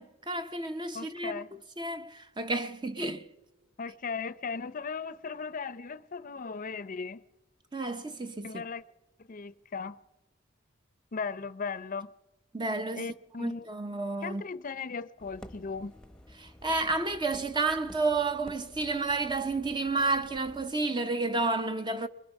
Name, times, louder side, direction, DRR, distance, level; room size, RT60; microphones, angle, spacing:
voice 1, 0.0-1.4 1.8-3.3 7.7-8.6 12.5-13.1 13.4-14.4 16.4-22.1, right 3 dB, 25° right, 0.7 m, -31 dB
voice 2, 0.9-1.5 3.8-7.2 8.4-8.8 9.3-10.0 11.1-12.1 12.9-13.6 14.2-15.9, left 5 dB, 45° left, 0.6 m, -37 dB
sound 1, 15.2-20.9, left 1 dB, 5° left, 0.9 m, -52 dB
24.5 x 21.5 x 5.4 m
head